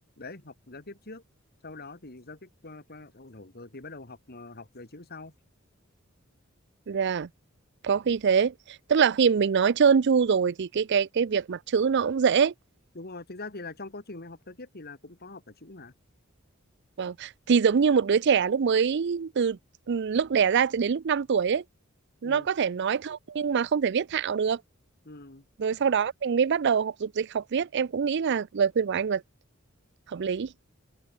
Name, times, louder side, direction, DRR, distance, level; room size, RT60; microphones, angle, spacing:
voice 1, 0.2-1.2 1.6-5.3 12.9-15.9 22.2-22.5 25.0-25.5, left 3 dB, 50° left, 2.6 m, -43 dB
voice 2, 6.9-7.3 7.8-12.5 17.0-19.6 19.9-21.6 22.2-24.6 25.6-29.2 30.1-30.5, right 6 dB, 55° right, 0.4 m, -24 dB
open air
head